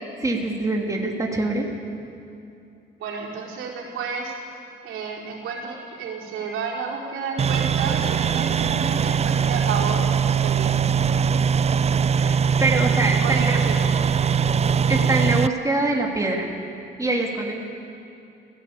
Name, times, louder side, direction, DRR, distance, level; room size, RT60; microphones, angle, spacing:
voice 1, 0.2-1.7 12.2-13.6 14.9-16.5 17.0-17.6, right 2 dB, 15° right, 0 dB, 2.9 m, -24 dB
voice 2, 3.0-4.3 4.8-10.8 13.2-14.2, right 5 dB, 85° right, -3 dB, 4.5 m, -31 dB
sound 1, 7.4-15.5, right 7 dB, 35° right, 0.4 m, -21 dB
21.0 x 15.5 x 8.5 m, 2.7 s
cardioid pair, 90°, 20 cm